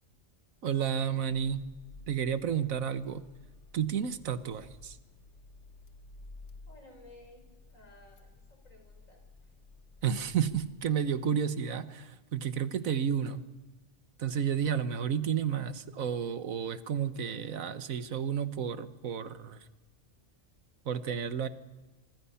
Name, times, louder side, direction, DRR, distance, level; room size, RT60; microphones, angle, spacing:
voice 1, 0.6-1.6 2.1-3.2 3.7-5.0 10.0-13.4 14.2-19.7 20.8-21.5, right 8 dB, 90° right, 13 dB, 1.5 m, -31 dB
Car / Engine starting, 1.3-11.3, left 3 dB, 60° left, 1.7 m, -54 dB
voice 2, 6.7-9.5, left 1 dB, 75° left, 4 dB, 5.3 m, -57 dB
25.0 x 24.0 x 5.7 m, 1.2 s
omnidirectional pair, 1.4 m